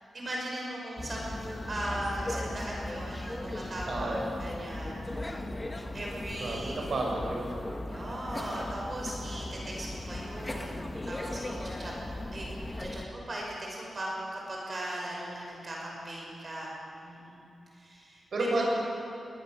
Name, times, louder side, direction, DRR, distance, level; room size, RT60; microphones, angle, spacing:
voice 1, 0.1-5.4 5.9-6.8 7.8-12.5 12.8-16.7 17.0-17.4 17.7-18.7, right 1 dB, 40° right, -2 dB, 5.8 m, -38 dB
sound 1, 1.0-13.1, left 1 dB, 20° left, 1.5 m, -37 dB
voice 2, 3.9-4.2 6.4-7.5 18.3-18.7, right 2 dB, 60° right, -1 dB, 6.4 m, -31 dB
21.5 x 20.0 x 6.7 m, 2.8 s
wide cardioid pair, 110°, 0 cm